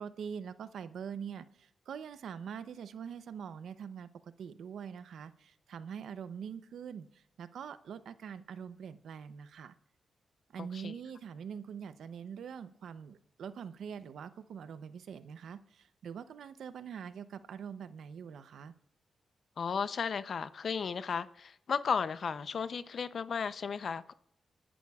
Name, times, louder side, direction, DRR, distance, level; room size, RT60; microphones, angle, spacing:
voice 1, 0.0-9.7 10.5-18.7, right 7 dB, 85° right, 0.6 m, -44 dB
voice 2, 19.6-24.1, left 6 dB, 65° left, 0.5 m, -34 dB
25.5 x 11.0 x 2.4 m
cardioid pair, 65°, 0 cm